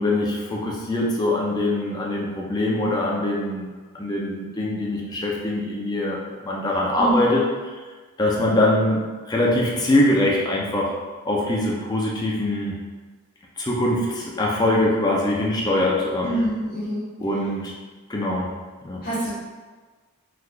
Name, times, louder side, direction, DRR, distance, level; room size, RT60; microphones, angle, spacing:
voice 1, 0.0-3.7 3.9-7.4 8.2-10.9 11.2-12.8 13.6-16.3 17.2-17.7 18.1-18.5 18.8-19.0, left 1 dB, 20° left, -3 dB, 0.4 m, -23 dB
voice 2, 7.0-7.4 16.2-17.1 19.0-19.3, right 1 dB, 40° left, -10 dB, 1.4 m, -25 dB
3.5 x 3.2 x 2.4 m, 1.4 s
head